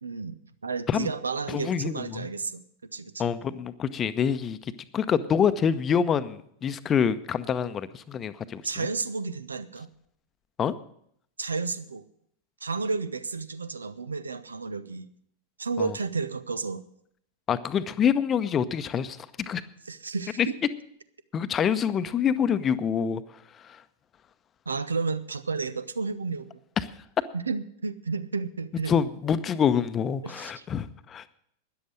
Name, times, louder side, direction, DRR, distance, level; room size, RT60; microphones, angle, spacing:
voice 1, 0.0-2.6 2.9-3.3 8.6-9.9 11.4-12.0 12.6-15.1 15.6-16.8 19.9-20.5 24.7-26.6 27.3-28.9 30.2-30.7, right 4 dB, 75° right, 15 dB, 0.8 m, -32 dB
voice 2, 1.5-2.3 3.2-8.9 10.6-10.7 15.8-15.9 17.5-19.6 20.4-20.5 21.3-23.2 23.6-23.8 26.8-26.9 28.9-31.2, left 7 dB, 25° left, 13 dB, 0.8 m, -26 dB
13.0 x 10.5 x 6.4 m, 0.68 s
figure-of-eight pair, 90°, 0 cm